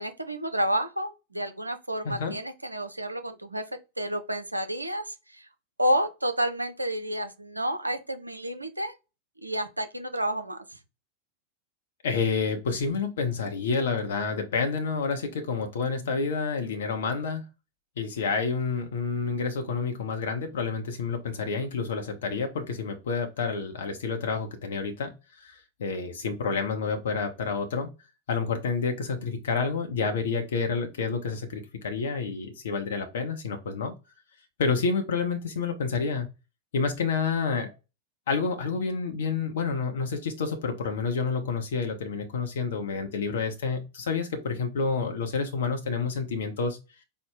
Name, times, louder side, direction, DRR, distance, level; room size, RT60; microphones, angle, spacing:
voice 1, 0.0-3.6 4.0-5.1 5.8-8.9 9.4-10.6, right 1 dB, 85° right, 0.5 m, -30 dB
voice 2, 2.0-2.4 12.0-17.4 18.0-27.9 28.3-33.9 34.6-36.3 36.7-37.7 38.3-46.8, left 5 dB, 60° left, 0.6 m, -29 dB
4.4 x 2.0 x 3.7 m
figure-of-eight pair, 90°, 0 cm